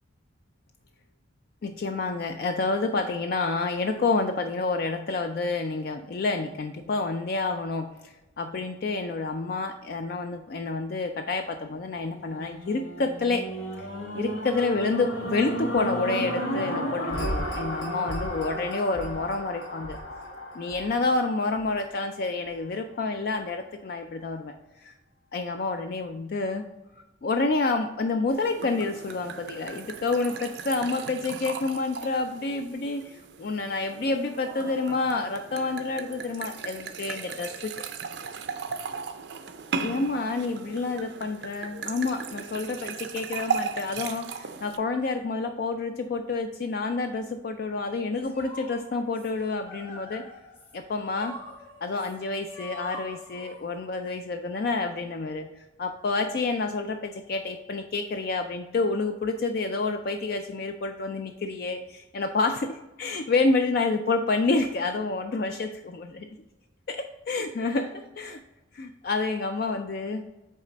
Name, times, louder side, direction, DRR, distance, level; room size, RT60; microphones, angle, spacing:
voice 1, 1.6-13.5 13.8-13.9 14.1-20.0 20.5-24.5 24.8-24.9 25.3-26.6 27.2-37.7 39.8-50.2 50.7-51.3 51.8-66.3 66.9-68.4 68.7-70.2, left 3 dB, 50° left, 6 dB, 0.3 m, -29 dB
sound 1, 12.0-22.3 22.9-23.0, equal, 90° left, 1.9 m, -33 dB
sound 2, 28.3-44.8, right 5 dB, 60° right, 0.5 m, -37 dB
sound 3, 48.2-54.1, left 1 dB, 30° left, 1.4 m, -45 dB
8.3 x 3.2 x 4.0 m, 1.0 s
head